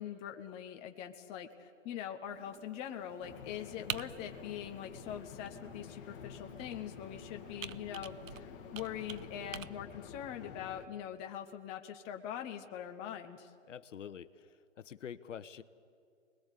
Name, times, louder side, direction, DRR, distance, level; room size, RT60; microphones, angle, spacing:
voice 1, 0.0-13.5, left 10 dB, 15° left, 5 dB, 0.7 m, -43 dB
Computer keyboard, 2.3-9.7, right 8 dB, 85° right, 0.9 m, -48 dB
sound 1, 3.2-10.9, left 8 dB, 40° left, 2.0 m, -50 dB
voice 2, 13.7-15.6, left 8 dB, 70° left, 14 dB, 1.1 m, -47 dB
25.5 x 20.5 x 8.3 m, 2.4 s
hypercardioid pair, 145°, 39 cm